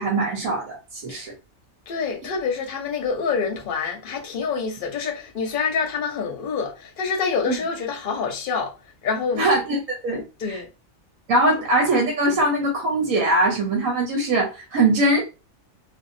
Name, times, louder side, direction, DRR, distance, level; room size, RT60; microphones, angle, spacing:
voice 1, 0.0-1.3 7.5-7.6 9.4-10.6 11.3-15.2, right 2 dB, 75° right, 1.1 m, -22 dB
voice 2, 1.9-8.7 9.0-9.5 10.1-10.7, left 5 dB, 50° left, 0.8 m, -27 dB
3.5 x 2.1 x 2.5 m
omnidirectional pair, 1.4 m